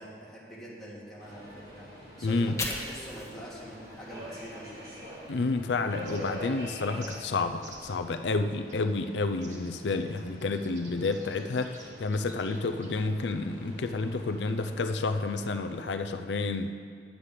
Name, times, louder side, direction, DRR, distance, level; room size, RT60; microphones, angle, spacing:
voice 1, 0.0-1.9 2.2-4.8, equal, ahead, -8 dB, 2.3 m, -44 dB
Subway metro underground, 1.2-15.8, equal, 60° right, 3.3 m, -46 dB
voice 2, 2.2-2.6 5.3-16.7, left 3 dB, 85° left, 7 dB, 0.5 m, -30 dB
Fire, 2.2-5.4 5.7-7.8, left 2 dB, 15° left, 1.2 m, -43 dB
sound 1, 6.0-6.6 7.0-7.2 7.6-8.0 8.7-8.8 9.4-13.0, right 2 dB, 45° right, 1.6 m, -51 dB
10.0 x 7.4 x 6.6 m, 2.2 s
head